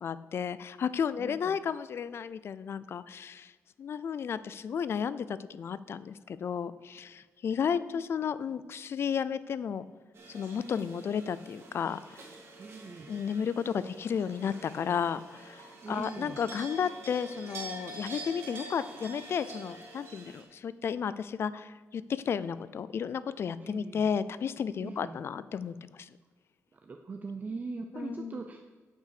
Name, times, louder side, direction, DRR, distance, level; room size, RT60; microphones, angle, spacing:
voice 1, 0.0-3.5 3.8-9.9 10.3-12.2 13.1-26.1 27.9-28.4, left 7 dB, 55° left, 16 dB, 0.4 m, -33 dB
voice 2, 1.2-1.6 7.6-8.0 12.6-13.1 15.8-16.4 23.6-24.0 24.8-25.2 26.7-28.6, right 4 dB, 35° right, 4 dB, 0.6 m, -41 dB
sound 1, 10.1-20.4, right 2 dB, 60° right, 2.4 m, -46 dB
8.1 x 6.7 x 6.7 m, 1.4 s
wide cardioid pair, 150°, 5 cm